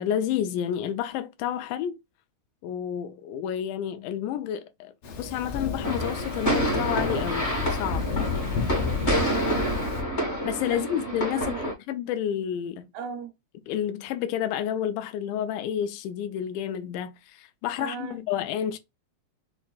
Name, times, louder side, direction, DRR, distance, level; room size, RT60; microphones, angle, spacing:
voice 1, 0.0-2.0 2.6-8.1 10.4-11.5 11.9-12.9 13.7-18.8, left 10 dB, 90° left, 2.1 m, -30 dB
Thunder, 5.0-10.0, left 5 dB, 65° left, 1.5 m, -31 dB
sound 1, 5.8-11.7, right 1 dB, 45° left, 0.8 m, -28 dB
voice 2, 9.2-9.8 10.7-11.0 11.3-11.7 12.9-13.3 17.8-18.2, right 7 dB, 80° right, 1.9 m, -36 dB
5.7 x 2.2 x 2.3 m
omnidirectional pair, 3.5 m